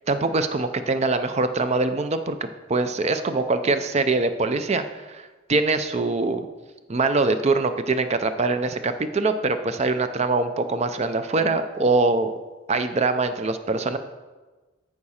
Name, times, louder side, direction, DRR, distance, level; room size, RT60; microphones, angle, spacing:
voice 1, 0.1-6.5 6.9-12.3 12.7-14.0, right 3 dB, 35° right, 9 dB, 0.5 m, -23 dB
13.5 x 4.8 x 4.3 m, 1.2 s
head